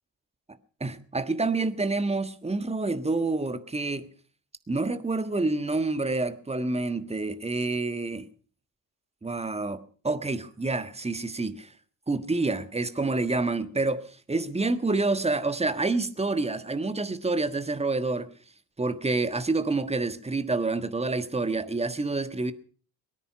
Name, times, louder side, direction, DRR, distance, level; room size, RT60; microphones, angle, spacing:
voice 1, 0.8-4.1 4.7-8.3 9.2-11.7 12.1-18.3 18.8-22.5, right 3 dB, 10° right, 1.5 m, -28 dB
22.5 x 9.9 x 5.7 m
figure-of-eight pair, 45°, 50 cm